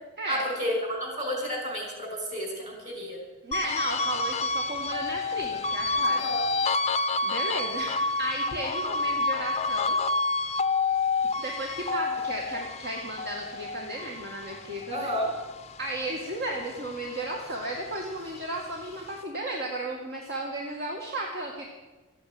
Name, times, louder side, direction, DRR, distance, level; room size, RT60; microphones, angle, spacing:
voice 1, 0.3-3.2 6.0-6.4 14.9-15.3, equal, 35° right, 1 dB, 5.9 m, -31 dB
voice 2, 3.4-6.2 7.2-10.0 11.4-15.1 15.8-21.6, right 1 dB, 55° right, 0 dB, 2.1 m, -34 dB
sound 1, 3.5-16.1 16.5-18.2, left 3 dB, 30° left, 0.7 m, -29 dB
14.0 x 9.8 x 9.6 m, 1.2 s
head